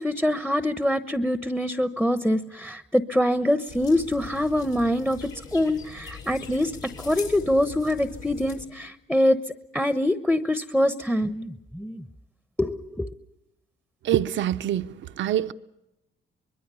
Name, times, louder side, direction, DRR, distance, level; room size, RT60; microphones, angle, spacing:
voice 1, 0.0-6.7 7.0-9.4 9.7-12.0 12.6-13.1, left 1 dB, 5° left, 1.0 m, -24 dB
sound 1, 3.7-8.6, left 5 dB, 90° left, 6.9 m, -42 dB
voice 2, 14.0-14.9 15.2-15.5, right 11 dB, 70° right, 0.8 m, -24 dB
24.5 x 21.5 x 7.0 m
cardioid pair, 90°, 20 cm